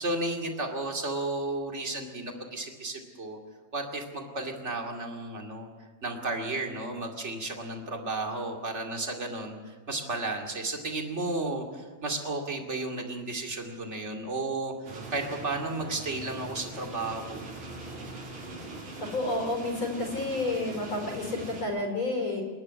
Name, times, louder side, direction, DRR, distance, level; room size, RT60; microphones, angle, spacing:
voice 1, 0.0-3.4 3.7-5.7 6.0-17.4, right 2 dB, 25° right, 2 dB, 2.3 m, -33 dB
sound 1, 14.9-21.6, right 2 dB, 70° right, 5.6 m, -41 dB
voice 2, 19.0-22.4, left 2 dB, 40° left, 1 dB, 5.6 m, -30 dB
27.5 x 11.0 x 9.7 m, 1.3 s
omnidirectional pair, 3.6 m